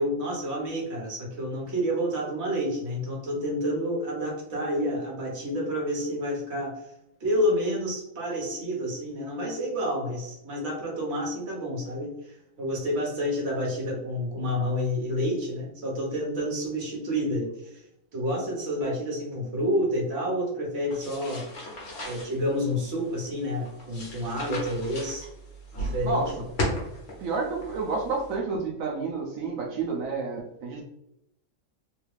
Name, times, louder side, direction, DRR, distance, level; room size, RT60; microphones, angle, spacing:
voice 1, 0.0-6.9 7.2-17.8 18.1-21.4 22.0-25.3 25.8-26.2, equal, 55° right, -3 dB, 1.3 m, -29 dB
sound 1, 20.9-28.4, left 1 dB, 65° left, 1.4 m, -37 dB
voice 2, 27.2-30.8, right 3 dB, 90° right, 0 dB, 1.1 m, -30 dB
3.3 x 2.3 x 3.2 m, 0.83 s
omnidirectional pair, 1.4 m